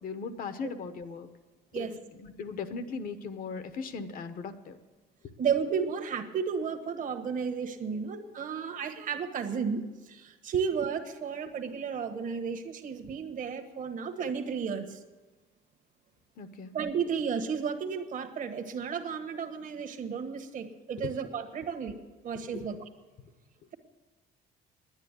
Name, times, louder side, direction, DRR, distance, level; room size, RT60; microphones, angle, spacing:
voice 1, 0.0-1.3 1.7-4.8 16.4-16.7 22.5-22.6, left 5 dB, 60° left, 10 dB, 1.0 m, -38 dB
voice 2, 5.4-15.0 16.7-22.0 22.2-22.9, right 6 dB, 50° right, 6 dB, 1.4 m, -33 dB
10.5 x 10.0 x 8.2 m, 1.2 s
cardioid pair, 110°, 17 cm